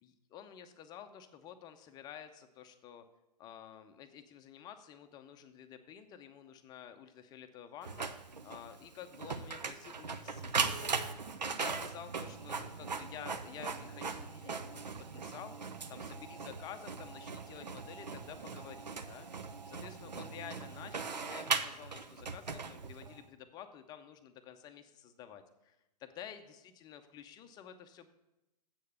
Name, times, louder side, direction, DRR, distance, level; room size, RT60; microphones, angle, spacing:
voice 1, 0.0-3.0 3.4-11.0 11.5-14.8 15.1-19.3 19.7-28.1, left 9 dB, 20° left, 8 dB, 0.6 m, -51 dB
Printer, 7.8-23.2, right 5 dB, 80° right, 0.7 m, -39 dB
7.8 x 6.5 x 6.7 m, 0.92 s
figure-of-eight pair, 120°, 21 cm